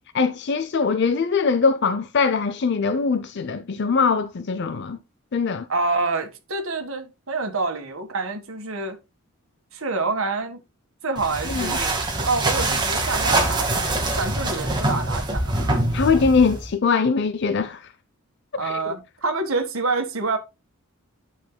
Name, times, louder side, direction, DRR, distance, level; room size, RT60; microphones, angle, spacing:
voice 1, 0.1-5.0 5.3-5.7 11.5-11.8 15.9-17.8 18.6-18.8, left 5 dB, 50° left, 0.5 m, -22 dB
voice 2, 5.7-9.0 9.7-10.6 11.0-15.8 18.6-20.4, right 3 dB, 65° right, 1.7 m, -27 dB
sound 1, 11.2-16.7, right 2 dB, 20° right, 1.9 m, -24 dB
10.5 x 6.5 x 2.3 m
head